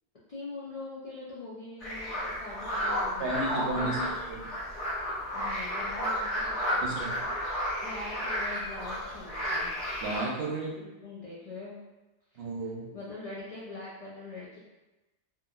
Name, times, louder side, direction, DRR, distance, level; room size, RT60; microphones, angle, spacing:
voice 1, 0.3-3.3 3.7-4.1 5.3-6.9 7.8-9.7 11.0-11.8 12.3-12.5 12.9-14.6, left 3 dB, 55° left, -8 dB, 0.4 m, -43 dB
sound 1, 1.8-10.2, equal, 85° left, 1.1 m, -32 dB
voice 2, 3.2-4.0 4.3-4.4 6.8-7.2 10.0-10.9 12.4-12.8, right 2 dB, 70° right, -2 dB, 0.8 m, -33 dB
2.8 x 2.4 x 2.4 m, 1.1 s
omnidirectional pair, 1.2 m